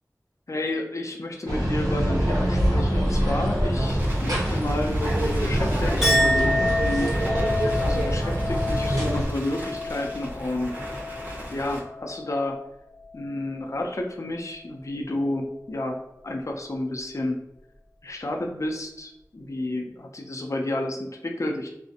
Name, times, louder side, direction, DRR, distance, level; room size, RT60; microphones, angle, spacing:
voice 1, 0.5-7.1 7.6-10.7 11.5-12.6 13.1-17.4 18.0-21.7, left 1 dB, 55° left, 2 dB, 0.4 m, -30 dB
sound 1, 1.5-9.3, equal, 70° right, 0.8 m, -24 dB
Crackle, 2.5-11.8, equal, 30° right, 0.7 m, -38 dB
Chink clink, 6.0-12.6 12.9-13.5, left 1 dB, 10° right, 1.2 m, -29 dB
2.4 x 2.0 x 2.6 m, 0.84 s
wide cardioid pair, 45°, 6 cm